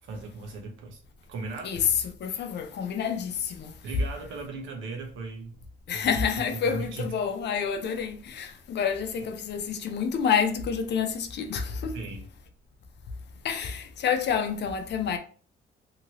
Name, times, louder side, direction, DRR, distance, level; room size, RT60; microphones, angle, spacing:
voice 1, 0.0-1.0 1.3-1.8 3.8-5.6 5.9-7.2 11.9-12.3, right 3 dB, 80° right, 0.9 m, -37 dB
voice 2, 2.2-3.8 5.9-12.0 13.4-15.2, left 7 dB, 60° left, 0.6 m, -28 dB
2.8 x 2.7 x 2.9 m
cardioid pair, 90°, 20 cm